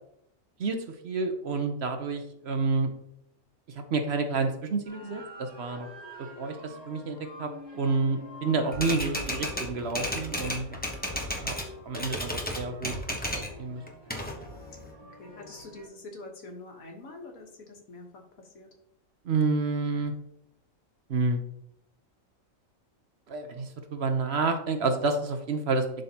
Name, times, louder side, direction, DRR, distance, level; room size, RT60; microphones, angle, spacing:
voice 1, 1.0-2.9 3.7-5.9 6.4-10.8 11.4-11.6 11.9-13.0 13.4-13.8 19.2-20.1 21.1-21.4 23.3-25.9, right 3 dB, 55° right, 6 dB, 0.9 m, -29 dB
sound 1, 4.8-15.9, equal, 20° right, 1.7 m, -47 dB
Typewriter, 8.7-11.7 11.9-13.5 13.9-14.9, left 1 dB, 10° left, 0.8 m, -33 dB
voice 2, 15.0-18.7, left 2 dB, 85° left, 2 dB, 1.7 m, -45 dB
11.0 x 3.9 x 2.8 m, 0.75 s
omnidirectional pair, 1.4 m